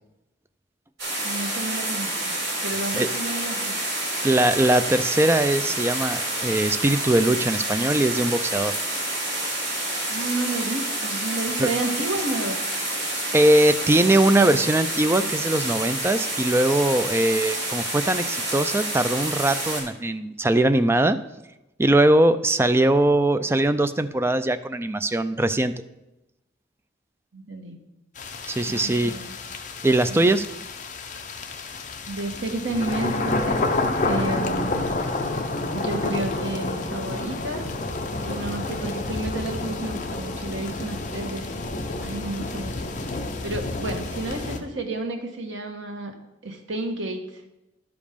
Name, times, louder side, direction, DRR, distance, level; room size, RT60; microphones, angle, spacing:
sound 1, 1.0-19.8, right 1 dB, 60° right, 4.0 m, -28 dB
voice 1, 1.2-2.3 2.6-3.8 10.1-12.6 27.3-27.8 28.7-29.3 30.1-30.4 32.1-33.6 34.0-34.9 35.7-37.7 38.2-41.5 42.0-42.7 43.4-46.1 46.4-47.4, right 2 dB, 90° right, 4 dB, 1.3 m, -31 dB
voice 2, 4.2-8.7 11.6-11.7 13.3-21.2 21.8-25.8 28.5-29.1 29.8-30.5, right 1 dB, 15° right, 11 dB, 0.3 m, -21 dB
sound 2, 28.2-44.6, left 2 dB, 40° left, 0.7 m, -29 dB
12.0 x 5.2 x 5.1 m, 0.95 s
head